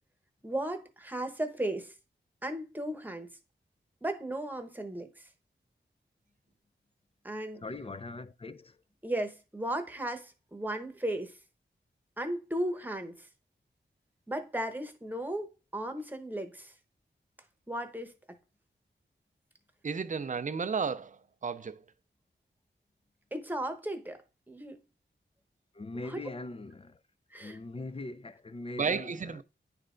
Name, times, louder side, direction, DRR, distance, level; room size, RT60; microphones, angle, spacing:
voice 1, 0.4-1.9 2.4-3.3 4.0-5.3 7.2-7.6 9.0-11.4 12.2-13.3 14.3-16.7 17.7-18.4 23.3-24.8 25.9-26.2 27.3-27.6, right 1 dB, 10° right, 0.9 m, -36 dB
voice 2, 7.6-8.8 25.7-27.0 27.4-29.4, left 2 dB, 30° left, 0.4 m, -41 dB
voice 3, 19.8-21.8 28.8-29.4, right 5 dB, 40° right, 0.4 m, -33 dB
9.6 x 3.3 x 3.8 m
wide cardioid pair, 95°, 20 cm